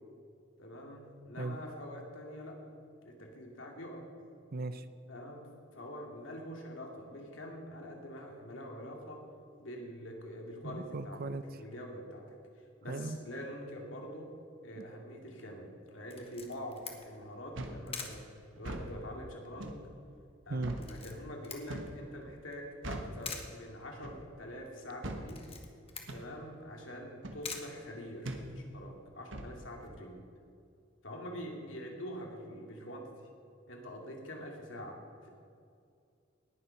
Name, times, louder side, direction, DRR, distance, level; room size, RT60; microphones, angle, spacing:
voice 1, 0.6-2.7 3.0-4.1 5.1-5.5 5.7-9.2 9.6-11.2 11.6-12.2 12.6-14.3 14.6-18.2 18.6-19.9 20.5-25.5 26.1-30.2 31.0-33.1 33.7-35.3, equal, 70° left, 1 dB, 2.4 m, -45 dB
voice 2, 4.5-4.9 10.6-11.4 12.9-13.2 14.8-14.9 20.5-20.8, right 2 dB, 50° right, 12 dB, 0.6 m, -37 dB
Camera, 16.1-28.6, left 5 dB, 30° left, 1.4 m, -49 dB
sound 1, 17.5-17.8 18.5-18.9 19.6-19.8 20.6-20.9 21.7-22.0 22.8-23.2 24.0-24.3 25.0-25.3 26.1-26.3 27.2-27.4 28.2-28.5 29.3-29.5, right 1 dB, 65° right, 1.3 m, -41 dB
19.0 x 7.2 x 5.8 m, 2.4 s
head